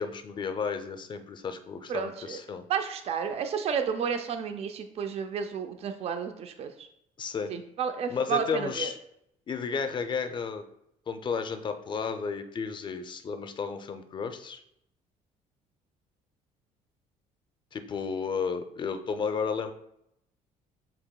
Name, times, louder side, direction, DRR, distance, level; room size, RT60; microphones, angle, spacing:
voice 1, 0.0-2.6 7.2-7.5 8.1-9.0 9.5-10.6 11.1-14.6 17.7-19.7, left 5 dB, 35° left, 8 dB, 0.5 m, -32 dB
voice 2, 1.9-2.4 2.7-6.7 7.5-8.9, right 7 dB, 50° right, 7 dB, 0.5 m, -31 dB
7.6 x 2.9 x 2.2 m, 0.76 s
cardioid pair, 105°, 14 cm